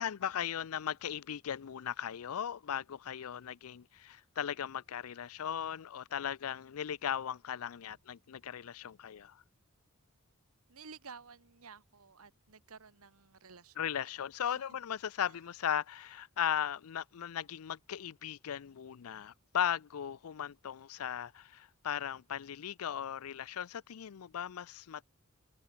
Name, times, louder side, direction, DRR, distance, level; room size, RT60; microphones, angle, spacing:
voice 1, 0.0-9.4 13.8-25.0, left 9 dB, 90° left, 0.5 m, -37 dB
voice 2, 10.7-13.9 14.4-14.7 15.3-15.4, right 5 dB, 90° right, 1.5 m, -53 dB
open air
head